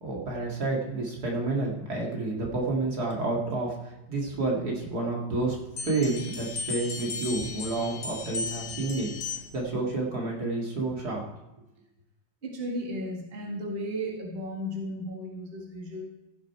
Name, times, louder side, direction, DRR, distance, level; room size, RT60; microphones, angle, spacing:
voice 1, 0.0-5.6 5.8-11.2, right 2 dB, 55° right, -1 dB, 2.5 m, -30 dB
sound 1, 5.8-9.7, left 4 dB, 55° left, 1.5 m, -36 dB
voice 2, 12.4-16.0, equal, 30° right, -1 dB, 2.0 m, -34 dB
16.0 x 6.5 x 4.6 m, 0.97 s
omnidirectional pair, 2.0 m